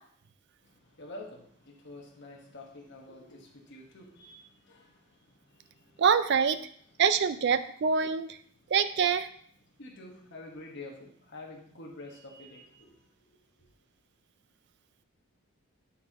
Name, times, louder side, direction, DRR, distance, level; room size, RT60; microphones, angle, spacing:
voice 1, 0.6-6.0 8.5-8.7 9.8-13.7, left 2 dB, 50° left, -1 dB, 1.4 m, -48 dB
voice 2, 6.0-6.6 7.0-8.4 8.7-9.3, right 6 dB, 50° right, 12 dB, 0.4 m, -25 dB
9.1 x 4.5 x 3.0 m, 0.62 s
head